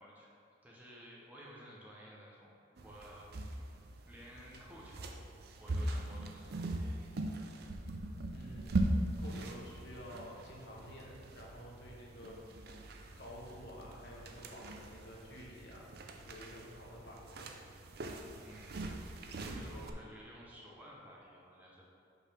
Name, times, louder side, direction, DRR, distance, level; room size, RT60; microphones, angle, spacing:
voice 1, 0.0-2.5 2.8-3.3 4.0-5.2 5.6-6.7 18.4-19.0 19.4-21.8, equal, 10° right, -5 dB, 0.8 m, -54 dB
sound 1, 2.8-19.9, right 1 dB, 50° right, 0.5 m, -41 dB
voice 2, 8.3-9.0 9.2-12.4 13.2-15.9 16.2-17.5 19.5-20.0, equal, 55° left, -3 dB, 1.2 m, -50 dB
5.6 x 4.0 x 5.9 m, 2.6 s
head